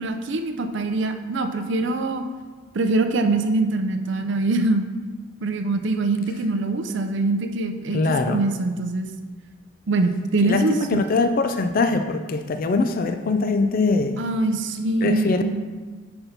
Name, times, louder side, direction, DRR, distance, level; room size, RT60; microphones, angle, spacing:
voice 1, 0.0-2.2 2.7-4.9 5.4-8.0 8.3-9.1 9.9-11.1 14.2-15.6, right 2 dB, 60° right, 7 dB, 0.5 m, -23 dB
voice 2, 7.9-8.4 10.4-14.2 15.0-15.4, left 3 dB, 45° left, 7 dB, 0.4 m, -22 dB
5.2 x 4.4 x 5.7 m, 1.4 s
head